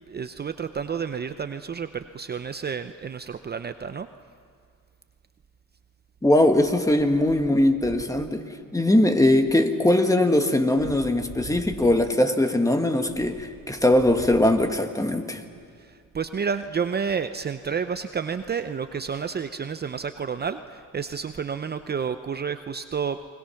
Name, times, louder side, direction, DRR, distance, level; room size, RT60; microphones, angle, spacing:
voice 1, 0.1-4.1 15.8-23.2, right 6 dB, 35° right, 0.7 m, -30 dB
voice 2, 6.2-8.4 8.7-15.4, left 1 dB, 10° left, 1.7 m, -21 dB
29.5 x 21.5 x 5.8 m
cardioid pair, 90°, 30 cm